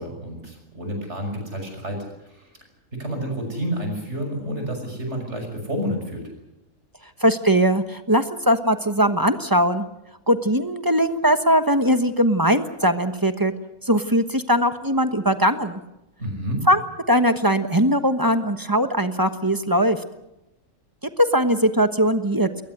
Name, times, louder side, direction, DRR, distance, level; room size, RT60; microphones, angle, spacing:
voice 1, 0.0-2.6 2.9-6.3 16.2-16.6, equal, 55° right, 4 dB, 6.5 m, -30 dB
voice 2, 7.2-9.8 10.3-13.5 13.8-15.8 16.7-16.8 17.1-20.0 21.2-22.5, equal, 15° right, 9 dB, 1.1 m, -20 dB
22.0 x 19.5 x 8.0 m, 0.91 s
omnidirectional pair, 1.4 m